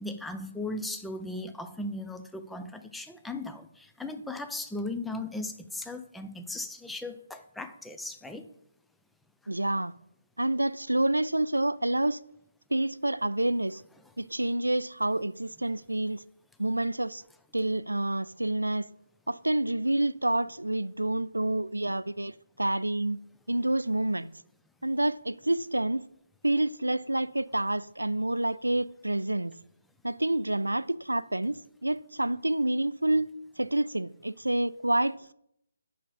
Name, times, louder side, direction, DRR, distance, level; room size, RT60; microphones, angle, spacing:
voice 1, 0.0-8.5, left 2 dB, 5° left, 0.5 m, -37 dB
voice 2, 9.5-9.9 10.4-12.2 12.7-13.8 14.2-16.2 16.6-17.2 17.5-18.9 19.3-23.2 23.5-24.3 24.8-26.1 26.4-29.5 30.0-33.3 33.6-35.3, right 1 dB, 75° right, 0.3 m, -28 dB
7.2 x 5.7 x 5.3 m
figure-of-eight pair, 145°, 0 cm